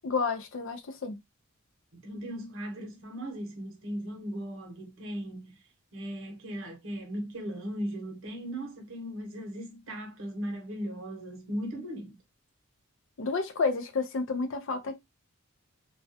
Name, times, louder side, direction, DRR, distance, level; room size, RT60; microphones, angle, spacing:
voice 1, 0.0-1.2 13.2-15.0, left 4 dB, 60° left, 0.5 m, -30 dB
voice 2, 2.0-5.5 5.9-12.2, equal, 60° right, 0.8 m, -37 dB
2.3 x 2.2 x 2.6 m
head